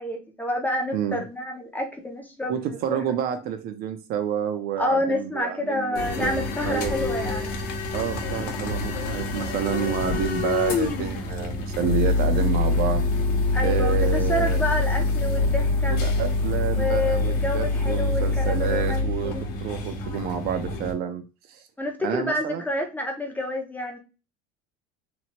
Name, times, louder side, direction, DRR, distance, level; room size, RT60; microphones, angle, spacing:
voice 1, 0.0-3.0 4.8-7.5 13.5-16.0 16.8-19.4 21.8-24.0, left 1 dB, 10° left, 2 dB, 0.4 m, -28 dB
voice 2, 0.9-1.2 2.5-6.3 6.6-6.9 7.9-13.0 13.6-14.6 15.9-21.2 21.5-21.6 22.0-22.6, right 8 dB, 50° right, 8 dB, 0.4 m, -29 dB
sound 1, 6.0-20.9, left 3 dB, 45° left, 0.7 m, -25 dB
2.9 x 2.0 x 2.8 m, 0.31 s
cardioid pair, 140°, 21 cm